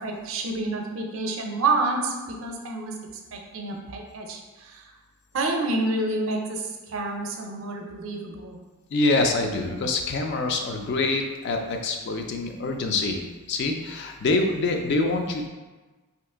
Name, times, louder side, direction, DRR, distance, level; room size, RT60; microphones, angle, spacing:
voice 1, 0.0-2.9 3.3-4.8 5.3-8.6, right 2 dB, 65° right, 2 dB, 0.5 m, -28 dB
voice 2, 8.9-13.2 13.5-15.5, left 3 dB, 55° left, 4 dB, 0.3 m, -25 dB
2.8 x 2.4 x 3.4 m, 1.2 s
head